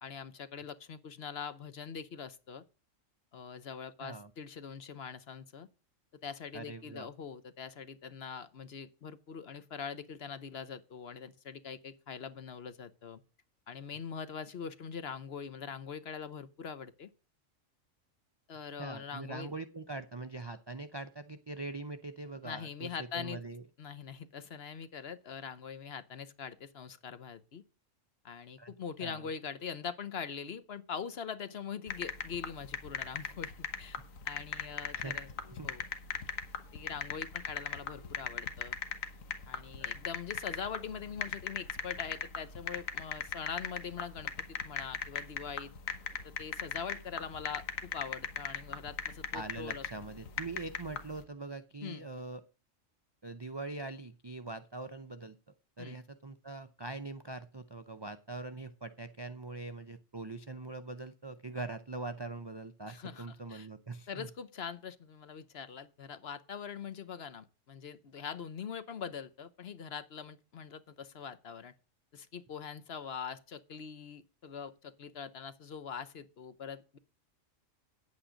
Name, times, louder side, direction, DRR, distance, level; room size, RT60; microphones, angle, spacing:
voice 1, 0.0-2.6 3.3-5.7 6.2-13.2 13.7-17.1 18.5-19.5 22.4-23.4 23.8-27.6 28.2-34.0 34.2-35.3 35.6-35.8 36.7-38.7 39.5-45.7 46.2-49.8 51.8-52.1 55.8-56.0 62.9-63.7 64.1-71.7 72.1-77.0, left 6 dB, 55° left, 1.0 m, -43 dB
voice 2, 6.5-7.1 18.7-23.6 28.6-28.7 29.0-29.3 34.9-35.2 35.5-35.7 39.8-39.9 49.3-52.4 53.2-55.4 55.8-64.3, right 3 dB, 35° right, 0.4 m, -42 dB
sound 1, 31.9-51.2, left 6 dB, 85° left, 1.6 m, -39 dB
9.6 x 8.6 x 5.1 m
omnidirectional pair, 1.3 m